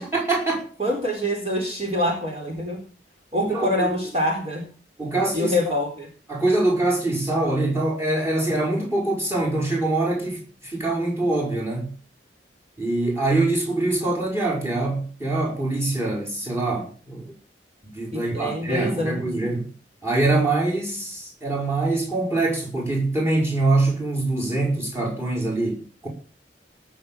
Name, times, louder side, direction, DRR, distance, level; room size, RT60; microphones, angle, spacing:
voice 1, 0.0-0.7 3.3-3.9 5.0-5.7 6.3-11.9 12.8-17.3 17.9-19.7 20.0-26.1, right 2 dB, 15° right, 5.4 m, -24 dB
voice 2, 0.8-2.8 3.3-4.6 5.3-6.1 18.1-19.2, left 1 dB, 35° right, 4.1 m, -25 dB
18.5 x 7.2 x 7.4 m
head